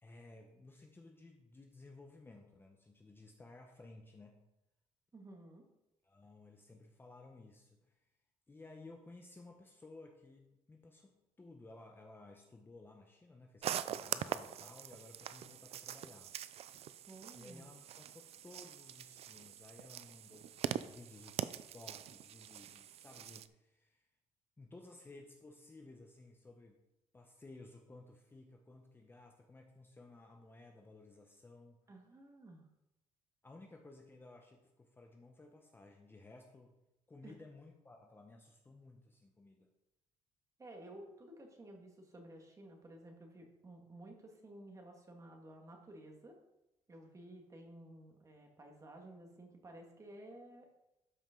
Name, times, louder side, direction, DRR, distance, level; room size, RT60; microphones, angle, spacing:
voice 1, 0.0-4.4 6.0-7.9 8.5-16.3 16.8-16.9 17.3-24.1 24.6-26.8 27.1-31.8 33.4-36.7 37.1-39.7, left 2 dB, 15° left, 2 dB, 0.9 m, -57 dB
voice 2, 5.1-5.6 17.1-17.7 31.9-32.7 37.2-37.4 40.6-46.4 46.9-50.7, right 1 dB, 25° right, 2 dB, 1.8 m, -54 dB
sound 1, 13.6-23.5, right 10 dB, 55° right, 0.4 m, -43 dB
12.0 x 5.4 x 3.8 m, 0.91 s
cardioid pair, 125°, 13 cm